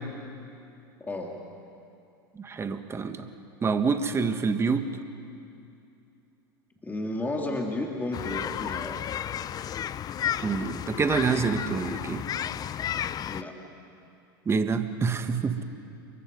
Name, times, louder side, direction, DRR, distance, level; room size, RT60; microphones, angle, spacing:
voice 1, 1.0-1.3 6.8-9.0 13.3-13.5, left 2 dB, 15° left, 1 dB, 2.7 m, -32 dB
voice 2, 2.3-3.3 3.6-4.8 10.4-12.2 14.4-15.6, right 5 dB, 20° right, 8 dB, 1.7 m, -27 dB
sound 1, 8.1-13.4, left 10 dB, 30° left, 0.6 m, -32 dB
29.0 x 23.0 x 5.3 m, 2.6 s
hypercardioid pair, 90°, 12 cm